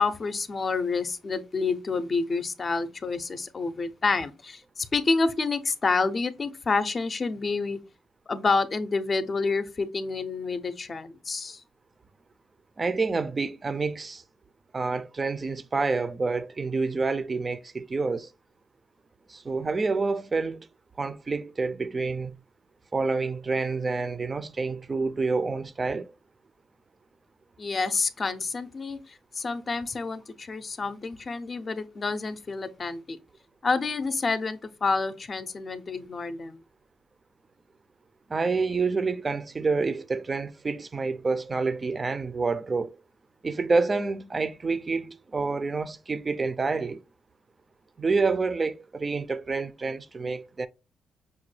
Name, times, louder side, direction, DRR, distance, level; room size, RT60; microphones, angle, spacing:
voice 1, 0.0-7.8 8.3-11.6 27.6-33.2 33.6-36.6, left 4 dB, 35° left, 0.5 m, -28 dB
voice 2, 12.8-14.2 14.7-18.3 19.3-20.7 21.0-22.4 22.9-26.1 38.3-43.0 43.4-47.0 48.0-50.7, right 4 dB, 30° right, 0.4 m, -28 dB
5.8 x 2.2 x 3.1 m
cardioid pair, 90°, 0 cm